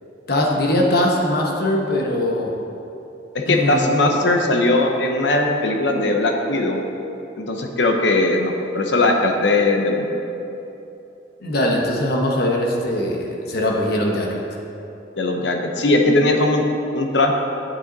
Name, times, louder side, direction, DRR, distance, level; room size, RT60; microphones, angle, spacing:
voice 1, 0.3-2.5 3.5-3.8 11.4-14.4, left 1 dB, 60° left, 0 dB, 1.2 m, -21 dB
voice 2, 3.3-6.8 7.4-10.1 15.2-16.6 16.9-17.3, left 2 dB, 75° left, 2 dB, 0.8 m, -19 dB
8.8 x 7.8 x 4.1 m, 2.9 s
head